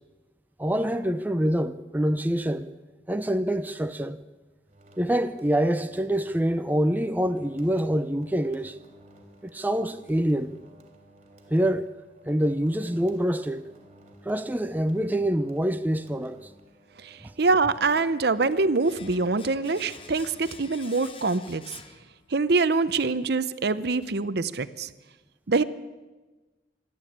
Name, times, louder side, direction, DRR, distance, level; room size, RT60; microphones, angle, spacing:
voice 1, 0.6-2.7 3.1-4.2 5.0-8.8 9.4-10.5 11.5-11.9 12.2-13.6 14.2-16.5 17.2-17.3, equal, 10° right, 0.5 m, -26 dB
sound 1, 4.7-21.1, right 1 dB, 35° right, 3.3 m, -54 dB
voice 2, 17.0-21.6 22.3-24.9 25.5-25.6, right 3 dB, 60° right, 0.7 m, -24 dB
Domestic sounds home sounds, 18.8-22.6 22.9-23.0, left 5 dB, 30° left, 1.1 m, -48 dB
26.5 x 11.0 x 8.7 m
head